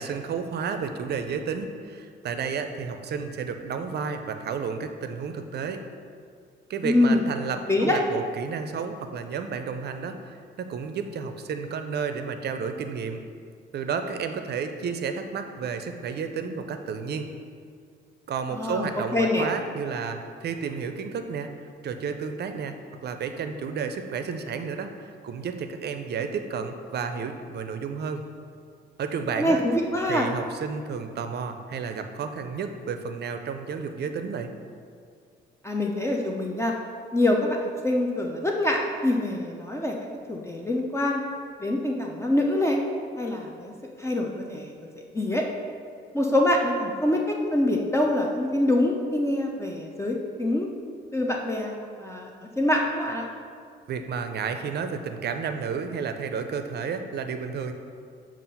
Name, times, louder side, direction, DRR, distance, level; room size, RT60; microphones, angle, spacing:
voice 1, 0.0-5.8 6.7-13.2 13.7-17.3 18.3-21.5 21.8-22.8 23.0-28.2 29.0-29.6 30.1-34.5 53.9-57.7, right 6 dB, 55° right, 7 dB, 0.5 m, -31 dB
voice 2, 6.8-7.2 7.7-8.0 18.5-18.9 19.1-19.5 29.4-30.3 35.6-36.7 37.1-41.2 41.6-42.8 43.2-43.7 44.0-44.7 45.1-45.4 46.1-50.7 51.1-52.3 52.6-53.2, left 1 dB, 15° left, 0 dB, 0.5 m, -25 dB
7.3 x 2.5 x 5.4 m, 2.2 s
cardioid pair, 90°, 20 cm